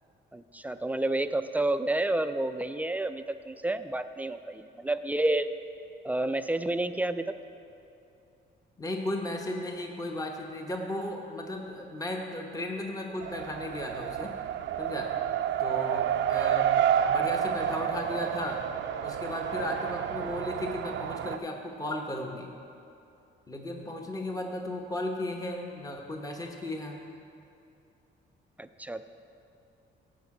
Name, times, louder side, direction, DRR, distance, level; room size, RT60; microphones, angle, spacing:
voice 1, 0.3-5.5 6.0-7.3 28.6-29.1, right 2 dB, 10° right, 10 dB, 0.3 m, -30 dB
voice 2, 8.8-14.3 14.8-15.1 15.6-16.8 17.1-18.6 19.0-22.5 23.5-27.0, left 1 dB, 20° left, 2 dB, 1.0 m, -35 dB
Race car auto racing, 13.2-21.4, right 9 dB, 70° right, 0.5 m, -29 dB
15.0 x 5.3 x 4.8 m, 2.7 s
cardioid pair, 90°, 20 cm